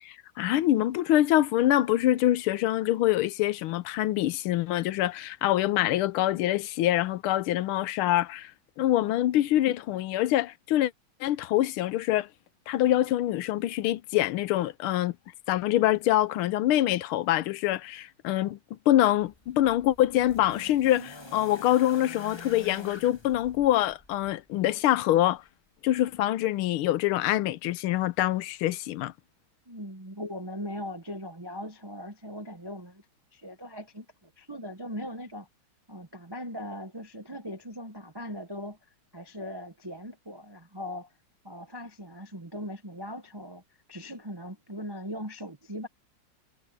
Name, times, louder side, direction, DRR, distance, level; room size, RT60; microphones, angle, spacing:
voice 1, 0.0-8.5 8.8-10.9 11.2-12.3 12.7-15.1 15.5-18.6 18.9-25.4 25.8-29.1, left 14 dB, 85° left, 1.5 m, -25 dB
sound 1, 19.2-24.4 25.5-25.6, left 2 dB, 15° left, 1.0 m, -47 dB
voice 2, 29.7-33.0 33.3-35.5 35.9-41.1 41.4-43.6 43.9-45.9, equal, 30° right, 0.4 m, -39 dB
omnidirectional pair, 2.3 m